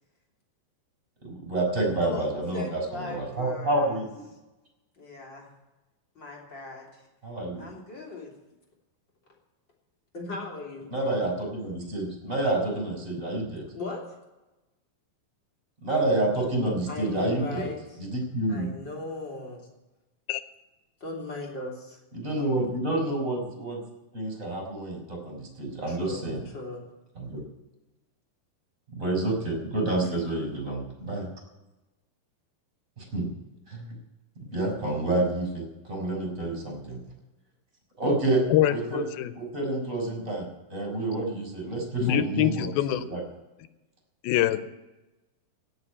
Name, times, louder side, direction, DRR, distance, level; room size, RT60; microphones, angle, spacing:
voice 1, 1.2-4.2 7.2-7.7 10.9-13.7 15.8-17.7 18.0-18.7 22.1-23.8 24.1-26.4 27.2-27.4 28.9-31.3 33.0-33.3 33.7-33.9 34.5-37.0 38.0-38.4 38.7-39.0 39.3-42.7 42.9-43.2, right 2 dB, 20° right, 1 dB, 4.3 m, -29 dB
voice 2, 2.5-4.1 5.0-5.5 6.1-7.1 7.6-8.3 10.1-10.9 13.7-14.2 16.9-18.0 18.5-19.7 21.0-22.0 25.9-26.3 26.5-26.8 30.0-30.1, left 2 dB, 30° left, -1 dB, 3.2 m, -38 dB
voice 3, 38.5-39.3 42.0-43.0 44.2-44.8, left 12 dB, 90° left, 14 dB, 2.6 m, -24 dB
16.5 x 6.0 x 9.8 m, 1.0 s
omnidirectional pair, 4.2 m